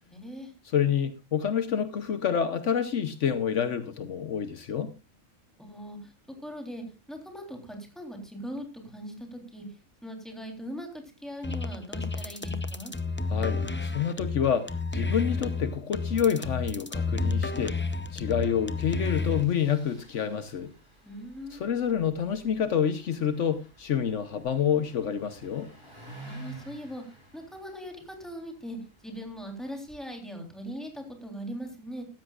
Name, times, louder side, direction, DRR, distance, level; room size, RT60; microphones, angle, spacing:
voice 1, 0.0-0.5 5.6-9.6 10.0-12.9 21.0-21.7 26.2-27.0 27.3-28.8 29.0-32.0, equal, ahead, 3.4 m, -40 dB
voice 2, 0.6-4.9 13.3-20.7 21.5-25.7, left 8 dB, 70° left, 1.2 m, -28 dB
sound 1, 11.4-19.4, left 3 dB, 15° left, 0.4 m, -31 dB
Engine starting, 18.9-29.9, right 2 dB, 20° right, 8.0 m, -51 dB
15.5 x 13.5 x 2.4 m
omnidirectional pair, 1.3 m